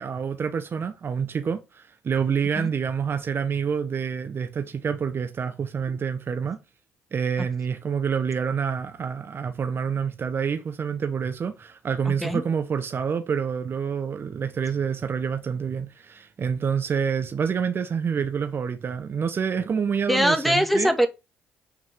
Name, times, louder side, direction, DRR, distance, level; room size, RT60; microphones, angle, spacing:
voice 1, 0.0-6.6 7.1-20.9, right 6 dB, 45° right, 0.9 m, -27 dB
voice 2, 12.1-12.4 20.1-21.1, equal, ahead, 1.8 m, -22 dB
8.2 x 4.8 x 3.6 m
hypercardioid pair, 50°, 5 cm